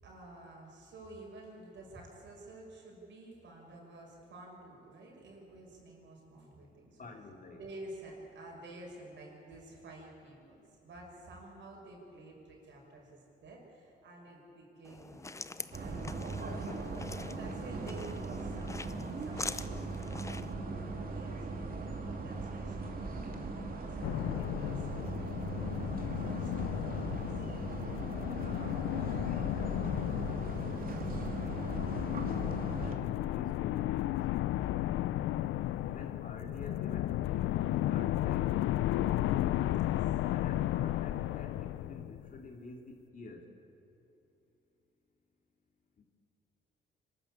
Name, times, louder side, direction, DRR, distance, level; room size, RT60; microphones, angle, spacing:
voice 1, 0.0-7.0 7.6-15.4 15.7-19.9 20.3-25.0 26.3-27.3 36.3-36.4 39.1-40.2, right 2 dB, 65° right, -1 dB, 6.0 m, -51 dB
voice 2, 7.0-7.6 29.5-35.3 35.8-38.5 40.3-43.5 46.0-46.1, left 2 dB, 45° left, 2 dB, 2.9 m, -50 dB
sound 1, 14.8-20.5, left 3 dB, 15° left, 0.6 m, -44 dB
sound 2, 15.7-33.0, right 3 dB, 45° right, 2.5 m, -39 dB
sound 3, 24.0-42.5, left 14 dB, 85° left, 0.5 m, -34 dB
25.0 x 13.0 x 8.6 m, 2.8 s
cardioid pair, 90°, 20 cm